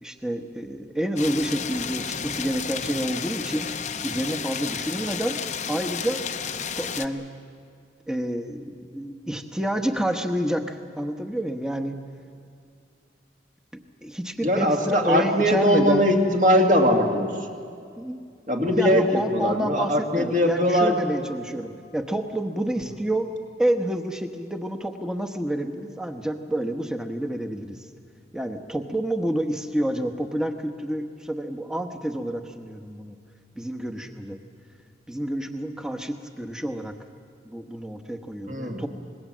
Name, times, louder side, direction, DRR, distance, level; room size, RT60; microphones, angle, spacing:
voice 1, 0.0-3.7 4.0-5.4 5.7-6.2 6.8-7.2 8.1-12.0 14.0-16.1 18.0-18.2 18.7-23.3 23.6-27.8 28.3-33.2 33.5-34.4 35.1-36.9 37.4-38.9, right 1 dB, 5° right, 5 dB, 1.1 m, -28 dB
sound 1, 1.2-7.1, left 7 dB, 40° left, 0.8 m, -32 dB
voice 2, 14.4-17.6 18.5-21.0 38.5-38.9, equal, 45° right, 2 dB, 2.2 m, -21 dB
26.5 x 21.0 x 7.5 m, 2.3 s
head